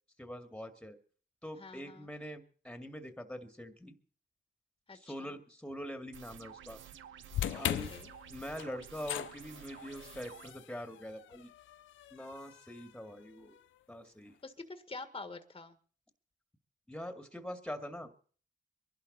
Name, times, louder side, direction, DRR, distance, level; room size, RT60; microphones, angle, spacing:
voice 1, 0.2-1.0 1.4-3.9 4.9-6.8 7.5-7.9 8.3-11.5 12.1-13.6 13.9-14.4 16.9-18.1, equal, 5° left, 7 dB, 2.2 m, -44 dB
voice 2, 1.6-2.1 4.9-5.3 7.9-8.1 14.4-15.8, left 3 dB, 25° left, 9 dB, 1.7 m, -46 dB
sound 1, 6.1-10.5, right 9 dB, 85° right, 0.9 m, -52 dB
sound 2, 7.3-13.6, left 11 dB, 85° left, 0.6 m, -41 dB
23.0 x 11.5 x 4.2 m, 0.43 s
cardioid pair, 75°, 19 cm